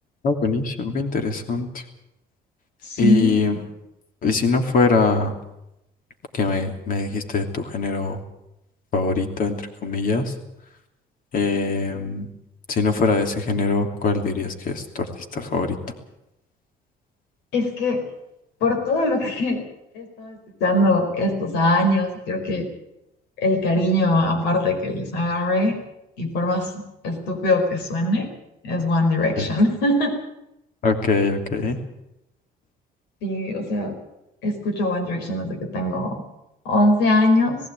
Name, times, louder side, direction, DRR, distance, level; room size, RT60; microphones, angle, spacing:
voice 1, 0.2-1.8 3.0-3.6 4.2-5.3 6.3-8.2 8.9-9.6 9.8-10.3 11.3-12.3 12.7-15.8 29.4-29.5 30.8-31.8, left 4 dB, 55° left, 6 dB, 3.0 m, -22 dB
voice 2, 2.8-3.6 17.5-18.0 18.6-19.6 19.9-22.7 23.4-25.8 26.2-28.3 28.6-30.1 33.2-34.0 34.4-36.2 36.6-37.6, left 1 dB, 85° left, 6 dB, 4.9 m, -22 dB
18.5 x 16.5 x 9.0 m, 0.87 s
cardioid pair, 110°, 17 cm